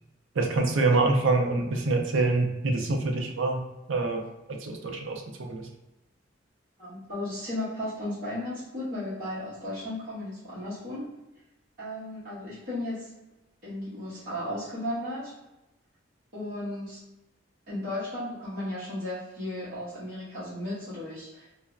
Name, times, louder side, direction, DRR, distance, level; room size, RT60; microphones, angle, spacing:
voice 1, 0.4-3.6 3.9-4.2 4.5-5.7, right 3 dB, 75° right, 2 dB, 0.5 m, -25 dB
voice 2, 6.8-11.1 11.8-13.1 13.6-15.3 16.3-17.0 17.7-21.5, left 1 dB, 45° right, -12 dB, 0.9 m, -35 dB
3.1 x 2.0 x 2.4 m, 0.97 s
head